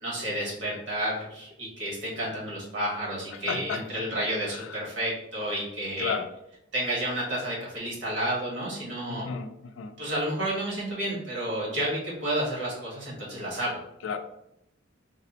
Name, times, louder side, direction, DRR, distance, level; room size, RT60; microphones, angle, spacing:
voice 1, 0.0-6.1 6.7-9.3 10.0-13.8, right 1 dB, 65° right, -5 dB, 1.4 m, -31 dB
voice 2, 3.5-3.8 6.0-6.3 9.1-9.5 9.8-9.9 14.0-14.2, left 6 dB, 80° left, 8 dB, 0.3 m, -31 dB
3.4 x 2.0 x 2.8 m, 0.82 s
head